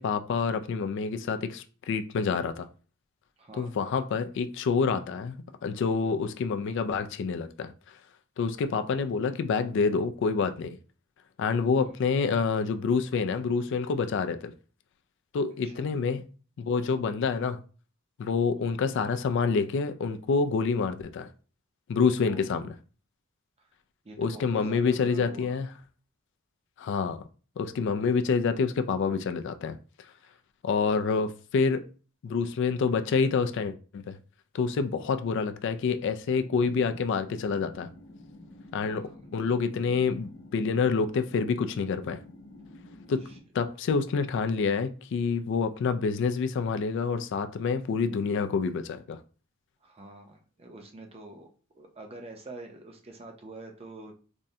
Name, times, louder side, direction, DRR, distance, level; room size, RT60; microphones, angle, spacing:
voice 1, 0.0-2.7 3.5-7.7 8.4-10.8 11.4-14.5 15.3-16.2 16.6-17.6 18.2-21.3 21.9-22.7 24.2-25.7 26.8-27.2 27.6-29.8 30.6-31.8 32.2-34.2 34.5-37.9 38.7-42.2 43.1-43.2 43.5-49.2, left 5 dB, 60° left, 0.3 m, -27 dB
voice 2, 3.4-3.8 11.8-11.9 15.6-15.9 18.7-18.8 22.3-22.5 23.6-23.7 24.0-25.6 35.1-35.2 38.9-39.2 43.3-43.4 49.8-51.5 51.7-54.1, right 2 dB, 30° right, 0.5 m, -46 dB
sound 1, 36.4-43.4, left 2 dB, 80° left, 0.7 m, -49 dB
3.5 x 2.1 x 2.7 m
head